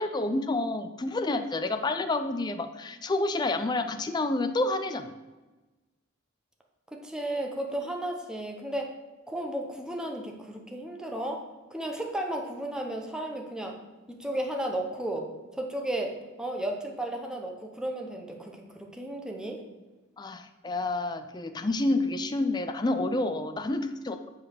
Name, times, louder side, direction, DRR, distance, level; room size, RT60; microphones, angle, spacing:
voice 1, 0.0-5.1 20.2-24.2, left 2 dB, 20° left, 8 dB, 0.4 m, -29 dB
voice 2, 6.9-8.9 9.3-13.8 14.1-19.6, right 1 dB, 5° right, 1 dB, 0.8 m, -34 dB
7.7 x 4.1 x 6.6 m, 1.2 s
head